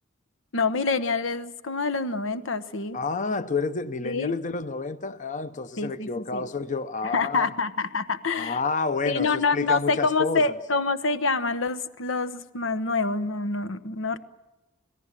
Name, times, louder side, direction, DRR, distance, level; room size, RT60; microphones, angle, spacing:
voice 1, 0.5-3.0 4.0-4.4 5.8-6.5 7.0-8.6 9.0-14.2, left 4 dB, 90° left, 1.0 m, -26 dB
voice 2, 2.9-7.5 8.4-10.6, left 4 dB, 40° left, 0.7 m, -29 dB
26.5 x 17.5 x 7.4 m
head